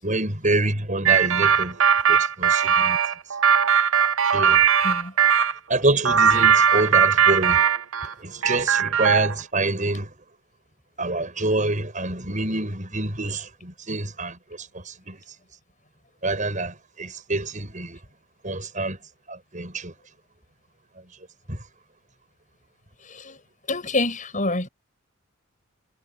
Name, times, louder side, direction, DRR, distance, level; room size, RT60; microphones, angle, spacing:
voice 1, 0.0-1.8 2.1-3.0 4.3-4.6 5.7-7.7 8.0-10.1 11.0-15.2 16.2-18.0 18.4-19.0 19.3-19.9 21.5-21.6, right 2 dB, 40° right, 7.2 m, -27 dB
sound 1, 1.1-5.5 6.1-8.1 8.4-9.4, right 7 dB, 80° right, 0.8 m, -19 dB
voice 2, 4.8-5.1 23.0-23.4 23.7-24.7, left 2 dB, 40° left, 8.0 m, -27 dB
head